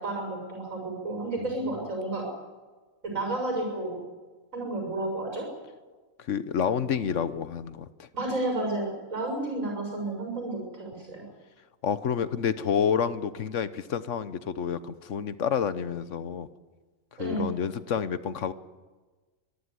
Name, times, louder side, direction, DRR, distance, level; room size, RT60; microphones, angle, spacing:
voice 1, 0.0-2.3 3.0-4.0 4.5-5.5 8.1-11.2 17.2-17.5, right 2 dB, 85° right, 1 dB, 7.1 m, -31 dB
voice 2, 6.2-8.1 11.8-16.5 17.2-18.5, left 7 dB, 70° left, 14 dB, 1.2 m, -29 dB
24.0 x 14.0 x 9.7 m, 1.3 s
omnidirectional pair, 1.4 m